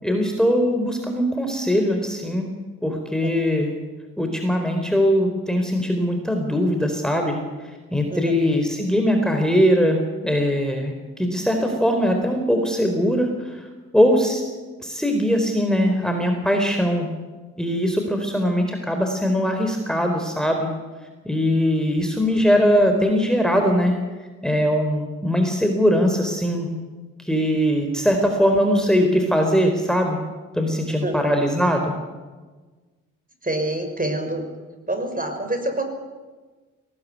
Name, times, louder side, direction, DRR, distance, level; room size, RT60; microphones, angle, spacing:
voice 1, 0.0-2.5 2.8-3.7 4.2-7.4 7.9-10.9 11.2-13.7 13.9-14.4 14.8-17.1 17.6-20.7 21.2-24.0 24.4-26.7 27.2-30.2 30.5-31.9, equal, ahead, 4 dB, 4.2 m, -21 dB
voice 2, 33.4-34.4 34.9-35.8, right 1 dB, 25° right, 5 dB, 6.0 m, -26 dB
19.0 x 17.5 x 9.6 m, 1.3 s
hypercardioid pair, 40°, 36 cm